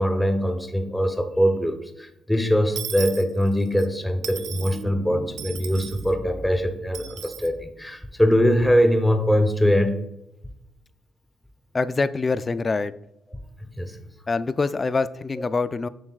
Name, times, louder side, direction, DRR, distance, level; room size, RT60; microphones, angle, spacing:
voice 1, 0.0-10.0 13.8-14.0, equal, 5° left, 0.7 m, -22 dB
Dishes pots and pans / Coin (dropping), 2.7-3.9 4.2-4.8 5.4-6.1 6.9-7.5, right 9 dB, 75° right, 0.4 m, -36 dB
sound 1, 3.7-8.1, right 2 dB, 50° right, 2.0 m, -41 dB
voice 2, 11.7-12.9 14.3-15.9, left 4 dB, 30° left, 0.3 m, -25 dB
7.2 x 6.3 x 2.4 m
cardioid pair, 90°, 0 cm